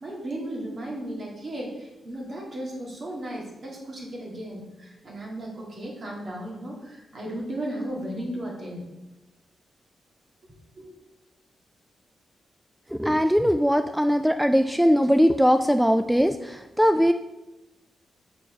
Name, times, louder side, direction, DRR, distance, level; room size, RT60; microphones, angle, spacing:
voice 1, 0.0-8.8 10.4-10.9, right 1 dB, 55° right, -2 dB, 2.1 m, -35 dB
voice 2, 12.9-17.1, equal, 5° right, 8 dB, 0.3 m, -20 dB
6.0 x 4.5 x 4.4 m, 1.0 s
supercardioid pair, 50°, 0 cm